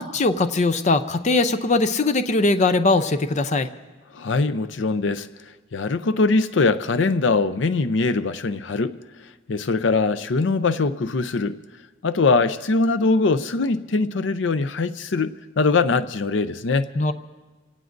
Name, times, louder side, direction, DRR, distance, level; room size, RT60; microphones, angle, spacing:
voice 1, 0.0-3.7 17.0-17.1, left 3 dB, 40° left, 10 dB, 0.5 m, -20 dB
voice 2, 4.1-5.3 5.7-9.0 9.5-11.6 12.0-16.9, left 3 dB, 85° left, 12 dB, 0.6 m, -22 dB
26.5 x 17.5 x 2.6 m, 1.2 s
head